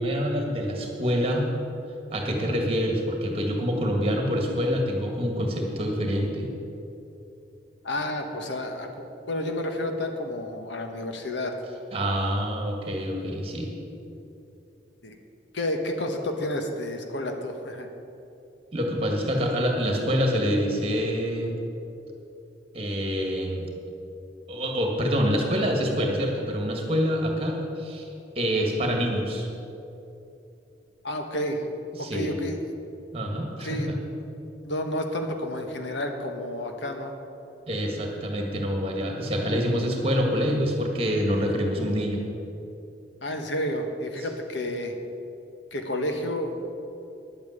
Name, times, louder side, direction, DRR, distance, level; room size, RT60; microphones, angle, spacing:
voice 1, 0.0-1.5 2.1-6.5 11.9-13.7 18.7-21.6 22.7-23.7 24.5-28.1 28.4-29.5 31.9-32.4 33.1-33.9 37.7-42.2, equal, 30° right, 1 dB, 1.9 m, -26 dB
voice 2, 7.8-11.5 15.0-15.2 15.5-17.9 31.0-31.6 32.0-32.6 33.6-33.9 34.6-37.1 43.2-44.9 45.7-46.6, left 1 dB, 75° left, 4 dB, 1.3 m, -30 dB
10.5 x 8.7 x 8.1 m, 2.8 s
head